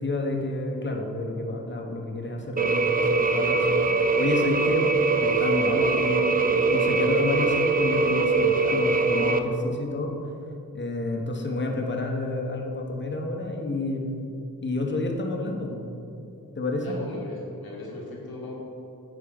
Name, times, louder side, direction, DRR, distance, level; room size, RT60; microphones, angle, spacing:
voice 1, 0.0-4.9 5.2-10.1 10.7-14.2 14.6-15.9 16.5-17.0, left 2 dB, 30° left, 1 dB, 1.1 m, -30 dB
sound 1, 2.6-9.4, right 3 dB, 25° right, 0.5 m, -22 dB
voice 2, 16.8-18.5, left 2 dB, 85° left, -4 dB, 1.9 m, -38 dB
8.7 x 4.4 x 5.3 m, 2.7 s
cardioid pair, 70°, 36 cm